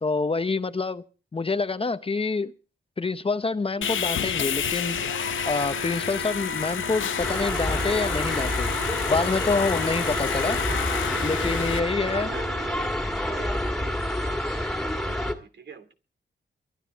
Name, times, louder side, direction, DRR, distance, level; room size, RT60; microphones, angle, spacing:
voice 1, 0.0-1.0 1.3-2.5 3.0-5.0 5.4-8.7 9.1-10.6 11.2-12.3, left 4 dB, 30° left, 11 dB, 0.8 m, -27 dB
Sawing, 3.8-11.8, left 9 dB, 85° left, 0.6 m, -30 dB
Wind instrument woodwind instrument, 3.8-13.0, right 5 dB, 50° right, 0.8 m, -39 dB
sound 1, 7.2-15.3, left 1 dB, ahead, 2.0 m, -28 dB
voice 2, 12.1-15.9, right 5 dB, 65° right, 7 dB, 2.4 m, -44 dB
23.0 x 12.5 x 3.5 m, 0.35 s
wide cardioid pair, 135°, 20 cm